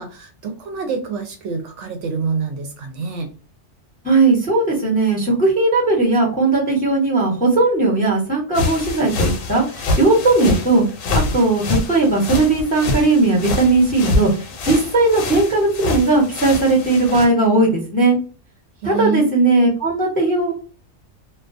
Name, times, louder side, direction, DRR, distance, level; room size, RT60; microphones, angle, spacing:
voice 1, 0.0-3.3 18.8-19.3, right 5 dB, 70° right, 4 dB, 0.8 m, -26 dB
voice 2, 4.0-10.8 11.3-14.3 14.6-18.2 18.8-20.5, right 2 dB, 10° left, -2 dB, 0.7 m, -17 dB
sound 1, 8.5-17.3, left 3 dB, 80° left, 1.0 m, -25 dB
2.3 x 2.2 x 2.5 m, 0.37 s
omnidirectional pair, 1.4 m